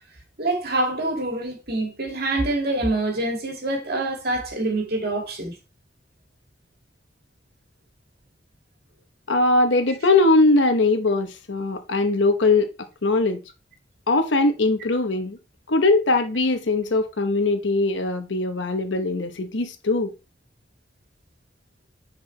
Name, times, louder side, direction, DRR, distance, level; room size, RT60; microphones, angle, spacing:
voice 1, 0.4-5.6, right 2 dB, 60° right, 2.3 m, -25 dB
voice 2, 9.3-12.7 13.0-13.4 14.1-15.4 15.7-20.1, left 2 dB, 85° left, 1.0 m, -21 dB
9.7 x 4.7 x 3.3 m
head